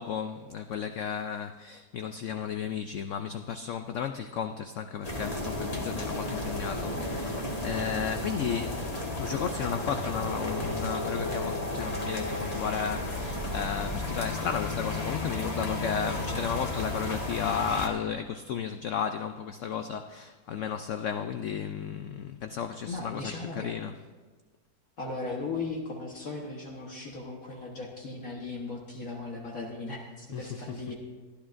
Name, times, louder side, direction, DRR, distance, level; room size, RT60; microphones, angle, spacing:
voice 1, 0.0-8.8 9.2-24.0 30.3-30.9, left 7 dB, 85° left, 0.6 m, -34 dB
sound 1, 5.0-17.9, left 1 dB, 25° left, 1.3 m, -33 dB
voice 2, 22.8-23.7 25.0-31.0, left 3 dB, 55° left, 1.6 m, -37 dB
23.0 x 12.0 x 2.5 m
omnidirectional pair, 1.8 m